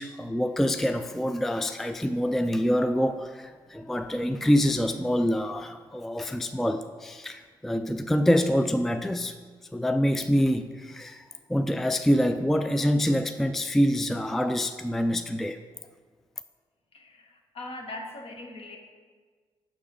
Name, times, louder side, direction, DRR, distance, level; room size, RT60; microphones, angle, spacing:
voice 1, 0.0-9.3 9.7-15.6, equal, 5° left, 8 dB, 0.3 m, -26 dB
voice 2, 16.9-18.8, left 2 dB, 55° left, 1 dB, 1.1 m, -40 dB
6.4 x 3.4 x 4.9 m, 1.5 s
hypercardioid pair, 40°, 12 cm